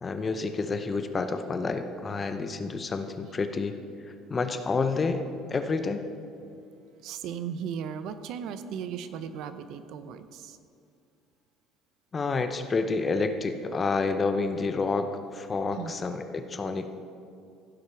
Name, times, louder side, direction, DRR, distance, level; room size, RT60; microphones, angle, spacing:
voice 1, 0.0-3.8 4.3-5.2 5.5-6.0 12.1-16.9, left 4 dB, 25° left, 8 dB, 0.7 m, -29 dB
voice 2, 6.9-10.6 15.7-15.9, right 7 dB, 65° right, 11 dB, 0.6 m, -37 dB
15.5 x 5.8 x 4.6 m, 2.4 s
cardioid pair, 120°, 0 cm